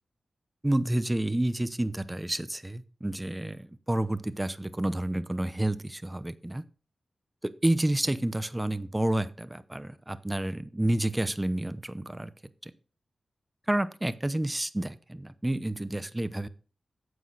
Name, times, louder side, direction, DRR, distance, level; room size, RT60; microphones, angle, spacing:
voice 1, 0.6-6.6 7.4-12.3 12.6-12.7 13.7-16.5, right 1 dB, 15° right, 14 dB, 0.8 m, -29 dB
9.5 x 8.3 x 4.0 m, 0.37 s
cardioid pair, 50°, 0 cm